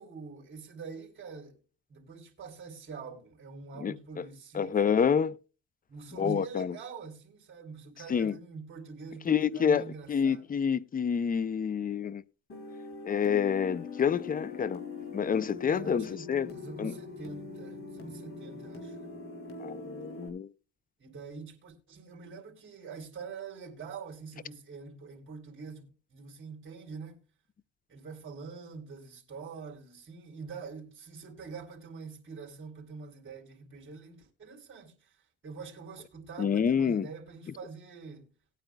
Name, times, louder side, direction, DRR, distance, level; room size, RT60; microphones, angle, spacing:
voice 1, 0.0-1.6 1.9-4.9 5.9-10.4 15.7-19.0 21.0-27.2 27.9-35.2 35.4-38.3, right 5 dB, 40° right, 3.4 m, -45 dB
voice 2, 3.8-4.3 4.5-5.4 6.2-6.8 8.1-8.4 9.3-12.2 13.0-14.8 15.1-16.5 16.8-16.9 19.6-20.5 36.4-37.1, left 7 dB, 30° left, 0.5 m, -28 dB
sound 1, 12.5-20.3, left 4 dB, 45° left, 3.4 m, -42 dB
18.5 x 9.0 x 2.2 m
cardioid pair, 90°, 30 cm